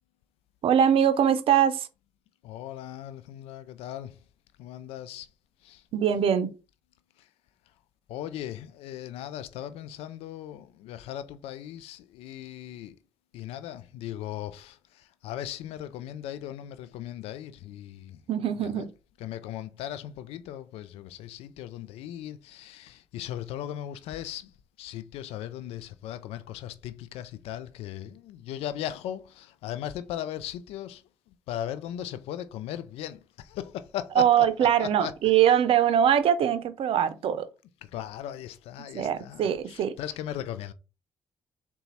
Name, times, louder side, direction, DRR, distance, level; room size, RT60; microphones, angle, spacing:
voice 1, 0.6-1.9 5.9-6.5 18.3-18.9 34.2-37.5 38.9-39.9, right 9 dB, 65° right, 0.6 m, -22 dB
voice 2, 2.4-4.2 4.6-5.3 5.6-5.8 7.2-7.3 8.1-13.0 13.3-18.2 18.5-18.9 19.2-24.5 24.8-31.0 31.3-35.1 37.8-40.7, left 11 dB, 75° left, 0.4 m, -38 dB
4.0 x 2.3 x 4.0 m
hypercardioid pair, 50°, 10 cm